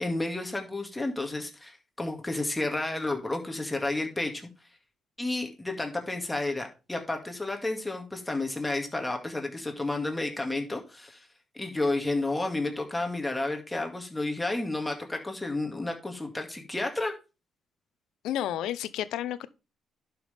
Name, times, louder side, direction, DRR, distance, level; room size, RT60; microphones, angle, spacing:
voice 1, 0.0-4.5 5.2-11.3 11.5-17.1, left 2 dB, 15° left, 2.2 m, -31 dB
voice 2, 18.2-19.5, left 12 dB, 85° left, 0.6 m, -31 dB
11.5 x 5.8 x 3.5 m
cardioid pair, 90°, 0 cm